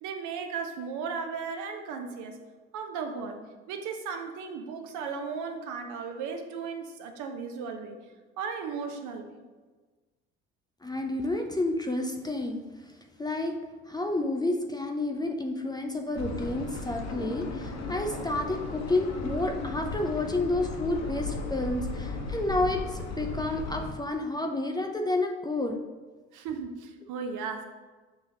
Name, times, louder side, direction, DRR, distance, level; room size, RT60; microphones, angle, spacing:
voice 1, 0.0-2.4 2.7-8.0 8.4-9.4 26.3-27.7, right 5 dB, 65° right, 6 dB, 0.6 m, -36 dB
voice 2, 10.8-12.6 13.2-13.6 13.9-25.8, left 2 dB, 15° left, 3 dB, 0.4 m, -30 dB
sound 1, 16.1-23.9, left 3 dB, 55° left, 0.8 m, -36 dB
5.9 x 2.9 x 2.7 m, 1.3 s
hypercardioid pair, 60°, 33 cm